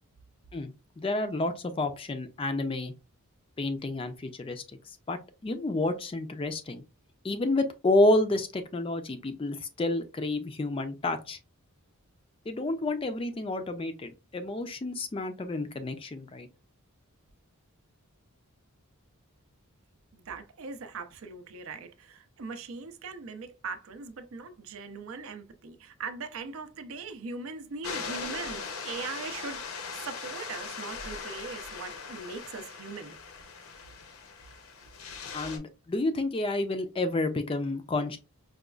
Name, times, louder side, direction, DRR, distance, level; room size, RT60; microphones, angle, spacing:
voice 1, 0.5-2.9 3.6-6.8 7.2-11.4 12.5-16.5 35.3-38.2, left 2 dB, 25° left, 0.3 m, -30 dB
voice 2, 20.1-33.2, right 4 dB, 65° right, 0.5 m, -40 dB
sound 1, 27.8-35.6, left 5 dB, 70° left, 0.7 m, -40 dB
4.9 x 2.3 x 2.3 m
head